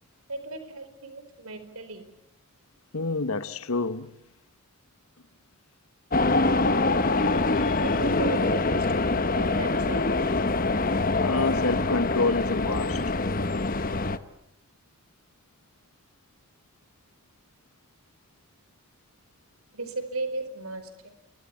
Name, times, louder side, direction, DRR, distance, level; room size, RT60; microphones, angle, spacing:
voice 1, 0.3-2.1 7.8-10.1 19.7-21.2, right 2 dB, 90° right, 4.5 m, -35 dB
voice 2, 2.9-4.1 11.1-13.1, left 3 dB, 85° left, 1.2 m, -28 dB
sound 1, 6.1-14.2, left 3 dB, 40° left, 1.2 m, -24 dB
27.5 x 23.5 x 8.4 m
head